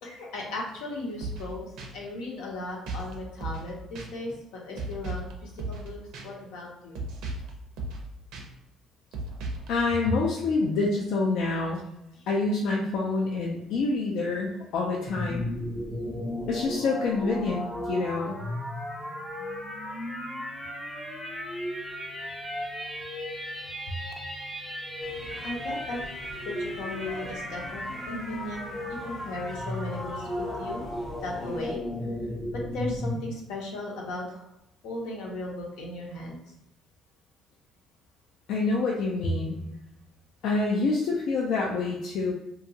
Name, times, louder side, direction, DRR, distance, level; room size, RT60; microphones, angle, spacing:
voice 1, 0.0-7.0 12.2-12.3 14.2-14.3 25.4-26.0 26.4-30.8 31.2-31.8 32.7-34.4 34.8-36.4, left 2 dB, 85° left, -2 dB, 0.8 m, -37 dB
sound 1, 1.2-1.5 1.8-1.9 2.9-3.1 3.4-3.7 4.0-4.1 4.8-5.3 5.6-5.9 6.1-6.2 7.0-7.5 7.8-8.0 8.3-8.4 9.1-9.7, right 2 dB, 75° right, 0.5 m, -35 dB
voice 2, 9.7-11.8 12.3-15.5 16.5-18.4 38.5-39.6 40.4-42.3, left 3 dB, 65° left, -2 dB, 0.4 m, -27 dB
sound 2, 15.1-33.2, left 1 dB, 5° left, 0.4 m, -35 dB
sound 3, 25.0-31.8, left 1 dB, 20° left, 0.8 m, -46 dB
2.8 x 2.2 x 2.7 m, 0.86 s
cardioid pair, 125°, 0 cm